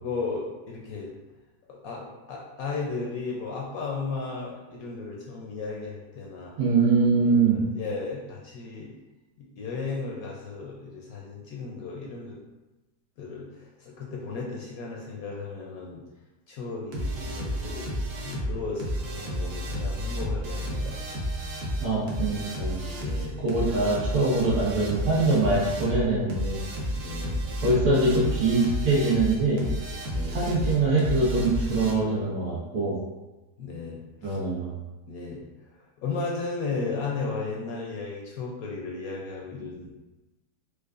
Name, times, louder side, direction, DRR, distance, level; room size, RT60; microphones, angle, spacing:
voice 1, 0.0-1.1 1.7-6.5 7.2-8.9 9.4-12.4 13.2-16.0 16.5-21.0 23.0-23.4 26.9-27.4 30.1-30.4 33.6-34.4 35.1-35.4 36.0-40.0, left 4 dB, 70° left, -2 dB, 0.9 m, -35 dB
voice 2, 6.6-7.6 21.8-22.8 23.4-26.6 27.6-29.6 30.3-33.0 34.2-34.8, right 3 dB, 80° right, -6 dB, 1.7 m, -23 dB
sound 1, 16.9-31.9, equal, 60° right, 0.9 m, -31 dB
4.6 x 2.3 x 2.4 m, 1.1 s
omnidirectional pair, 1.8 m